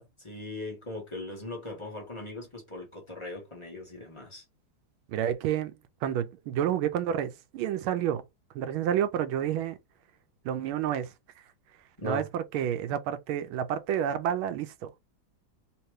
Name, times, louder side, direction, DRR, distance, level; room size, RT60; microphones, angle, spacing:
voice 1, 0.0-4.4 12.0-12.3, left 2 dB, 20° left, 0.9 m, -39 dB
voice 2, 5.1-5.7 6.0-8.2 8.5-9.8 10.4-11.1 12.0-15.0, right 10 dB, 85° right, 1.4 m, -29 dB
3.6 x 2.9 x 3.1 m
omnidirectional pair, 2.3 m